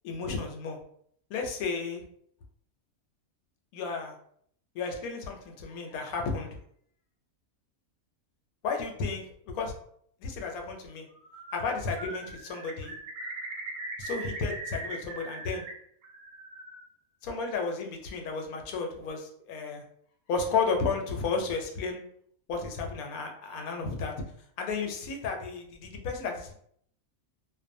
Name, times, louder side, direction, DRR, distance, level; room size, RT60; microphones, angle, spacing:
voice 1, 0.0-0.8 1.3-2.0 3.7-4.2 4.7-6.6 8.6-9.2 9.5-9.7 10.2-11.1 11.5-12.9 14.0-15.6 17.2-19.8 20.3-22.0 22.5-24.1 24.6-26.5, left 4 dB, 85° left, 3 dB, 1.0 m, -33 dB
Bird, 11.1-11.7 12.0-15.7 16.0-16.8, right 3 dB, 75° right, 1.1 m, -40 dB
2.5 x 2.1 x 2.5 m, 0.65 s
omnidirectional pair, 1.5 m